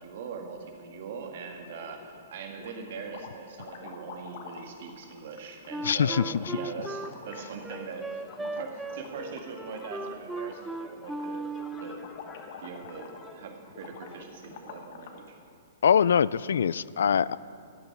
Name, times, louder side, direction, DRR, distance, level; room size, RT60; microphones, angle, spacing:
voice 1, 0.0-11.5 11.8-12.1 12.6-15.4, right 5 dB, 55° right, 3 dB, 1.9 m, -41 dB
sound 1, 1.6-2.2 2.5-15.3, left 6 dB, 45° left, 1.3 m, -48 dB
Wind instrument woodwind instrument, 5.7-12.0, right 2 dB, 5° right, 0.3 m, -37 dB
voice 2, 5.8-6.4 15.8-17.4, left 7 dB, 85° left, 20 dB, 0.3 m, -23 dB
sound 2, 7.7-14.2, left 4 dB, 15° left, 0.8 m, -52 dB
14.0 x 7.0 x 9.8 m, 2.4 s
hypercardioid pair, 160°, 0 cm